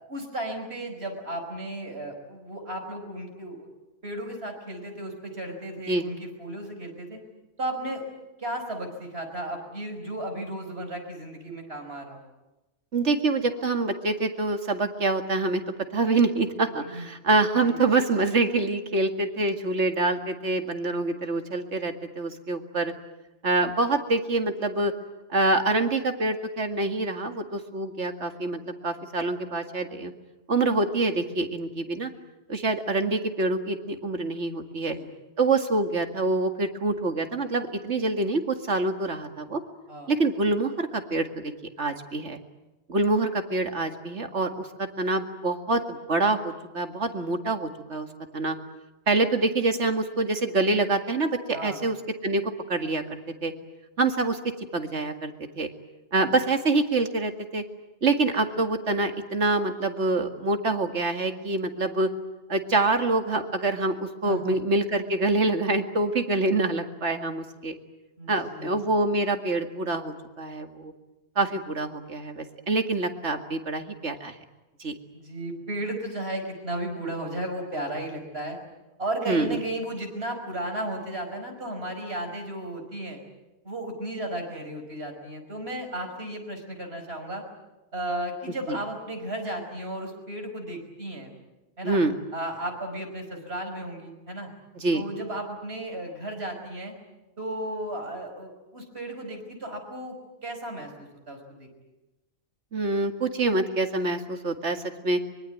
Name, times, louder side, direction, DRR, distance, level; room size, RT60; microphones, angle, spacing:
voice 1, 0.1-3.7 4.0-7.2 7.6-8.0 8.4-12.2 16.8-17.1 17.5-17.8 34.7-35.1 39.9-40.1 51.5-51.8 64.2-64.6 68.2-68.8 75.1-78.6 79.0-83.2 83.6-87.4 87.9-91.3 91.8-92.0 92.3-94.5 94.9-96.9 97.4-100.1 100.4-101.7, right 1 dB, 60° right, 4 dB, 5.6 m, -34 dB
voice 2, 12.9-15.6 15.9-22.9 23.4-24.9 25.3-30.1 30.5-32.1 32.5-35.0 35.4-39.6 40.1-41.5 41.8-42.4 42.9-48.1 48.3-48.6 49.1-52.0 52.2-53.5 54.0-54.4 54.7-55.7 56.1-57.6 58.0-62.1 62.5-67.8 68.3-70.9 71.4-74.4 74.8-74.9 79.3-79.6 88.7-88.8 91.8-92.1 94.8-95.0 102.7-105.2, right 2 dB, 80° right, 6 dB, 2.4 m, -26 dB
24.5 x 23.5 x 9.3 m, 1.0 s
omnidirectional pair, 1.2 m